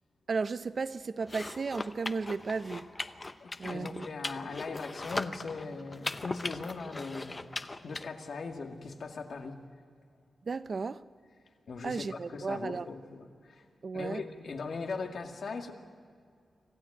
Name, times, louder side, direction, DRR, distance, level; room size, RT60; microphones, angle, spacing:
voice 1, 0.3-2.9 3.6-4.1 10.4-11.0 11.8-12.9 13.8-14.2, right 4 dB, 45° right, 0.7 m, -34 dB
sound 1, 1.2-8.0, left 2 dB, 25° left, 0.7 m, -39 dB
voice 2, 3.4-9.6 11.7-13.6 13.9-15.7, left 4 dB, 65° left, 2.1 m, -40 dB
26.0 x 15.5 x 8.7 m
wide cardioid pair, 130°, 0 cm